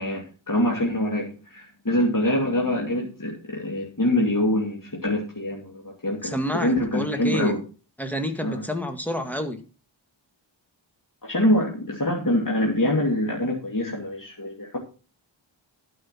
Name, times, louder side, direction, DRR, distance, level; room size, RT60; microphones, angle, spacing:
voice 1, 0.0-7.6 8.4-8.6 11.2-14.8, left 1 dB, 40° left, 2.5 m, -25 dB
voice 2, 6.2-7.5 8.0-9.6, equal, 5° left, 2.0 m, -28 dB
12.5 x 5.6 x 5.8 m
wide cardioid pair, 50°, 47 cm